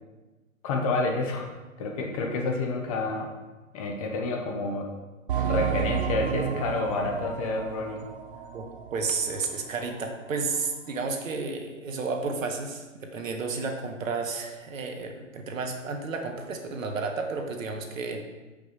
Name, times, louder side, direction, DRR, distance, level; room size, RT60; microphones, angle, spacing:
voice 1, 0.6-1.5 1.8-3.3 3.7-4.9 5.5-8.1, left 3 dB, 25° left, 2 dB, 0.8 m, -29 dB
sound 1, 5.3-9.6 9.9-10.0 10.6-10.7, right 9 dB, 40° right, 0.5 m, -31 dB
voice 2, 8.9-18.2, right 4 dB, 70° right, 3 dB, 1.4 m, -32 dB
6.1 x 5.3 x 5.1 m, 1.2 s
hypercardioid pair, 145°, 41 cm